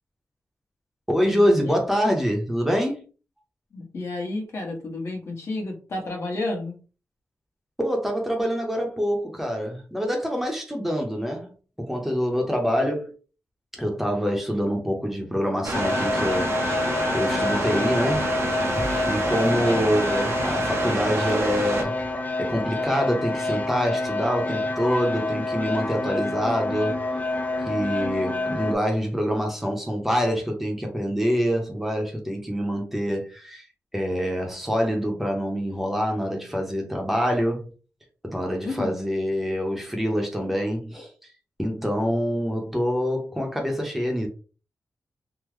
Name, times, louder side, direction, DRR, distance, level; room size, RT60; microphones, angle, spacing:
voice 1, 1.1-3.0 7.8-13.1 13.7-18.3 18.8-22.0 22.4-27.0 27.7-33.7 33.9-37.7 38.2-41.1 41.6-44.3, equal, 5° right, 0.7 m, -25 dB
voice 2, 3.7-6.8 19.5-19.9 38.6-39.0, left 2 dB, 60° left, 1.1 m, -31 dB
sound 1, 15.6-21.8, right 3 dB, 55° right, 0.6 m, -29 dB
sound 2, 15.7-28.7, left 2 dB, 30° left, 0.4 m, -27 dB
3.6 x 2.0 x 3.1 m
wide cardioid pair, 140°, 5 cm